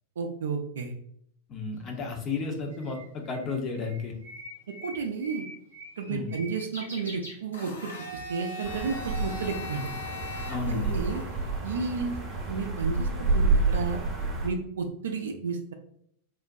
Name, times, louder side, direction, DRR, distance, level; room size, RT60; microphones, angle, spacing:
voice 1, 0.2-0.9 4.8-5.4 6.0-9.9 10.7-11.2 11.6-12.2 12.5-14.0 14.4-15.7, right 5 dB, 65° right, 5 dB, 0.4 m, -32 dB
voice 2, 1.5-4.1 6.1-6.3 10.5-11.0, left 4 dB, 30° left, 2 dB, 0.6 m, -33 dB
Bird, 1.8-8.0, equal, 90° left, 1.5 m, -45 dB
Domestic sounds home sounds, 7.5-11.6, left 2 dB, 70° left, 0.6 m, -40 dB
sound 1, 8.6-14.5, right 3 dB, 30° right, 0.8 m, -29 dB
3.7 x 2.1 x 2.6 m, 0.69 s
figure-of-eight pair, 90°, 0 cm